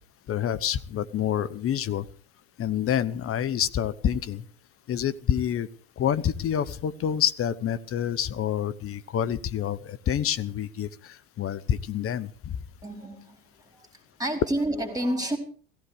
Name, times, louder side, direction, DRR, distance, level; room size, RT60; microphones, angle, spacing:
voice 1, 0.3-2.1 2.6-4.4 4.9-5.7 6.0-12.5, left 9 dB, 30° left, 14 dB, 1.0 m, -27 dB
voice 2, 12.8-13.9 14.2-15.4, right 1 dB, 10° right, 5 dB, 4.7 m, -30 dB
16.5 x 15.5 x 5.0 m, 0.42 s
hypercardioid pair, 85°, 44 cm